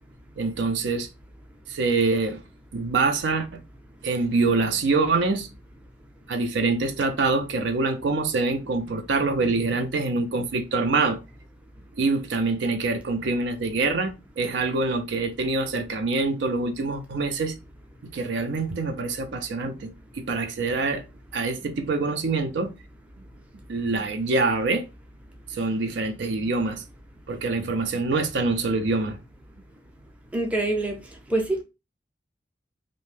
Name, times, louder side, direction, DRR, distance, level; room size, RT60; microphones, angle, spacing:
voice 1, 0.4-1.1 1.7-2.4 2.7-3.6 4.0-5.5 6.3-11.2 12.0-17.5 18.0-21.0 21.3-22.7 23.7-24.9 25.5-26.8 27.3-29.2, right 3 dB, 75° right, 0.5 m, -25 dB
voice 2, 30.3-31.0 31.3-31.6, right 2 dB, 5° right, 0.5 m, -25 dB
2.6 x 2.1 x 3.2 m
head